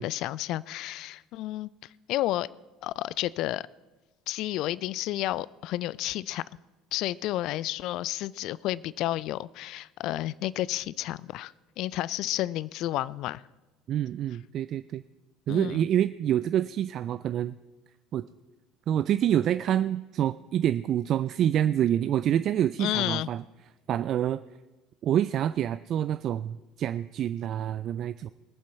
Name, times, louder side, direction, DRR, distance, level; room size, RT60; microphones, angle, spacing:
voice 1, 0.0-1.7 2.1-2.5 2.8-3.6 4.3-6.4 6.9-13.4 15.5-15.9 22.8-23.3, left 15 dB, 60° left, 21 dB, 0.3 m, -31 dB
voice 2, 13.9-15.0 15.5-17.5 18.1-18.3 18.9-23.4 23.9-24.4 25.0-28.3, right 10 dB, 50° right, 14 dB, 0.3 m, -27 dB
20.0 x 7.4 x 4.6 m, 1.2 s
hypercardioid pair, 65°, 0 cm